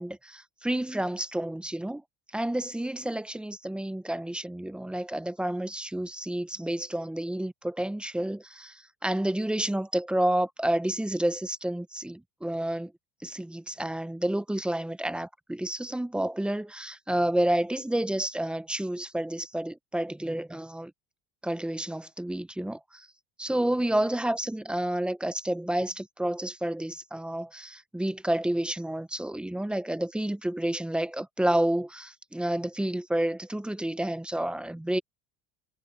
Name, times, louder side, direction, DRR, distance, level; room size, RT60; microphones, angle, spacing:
voice 1, 0.0-2.0 2.3-12.9 13.2-20.9 21.4-23.1 23.4-35.0, right 1 dB, 5° right, 0.5 m, -30 dB
cardioid pair, 155°, 36 cm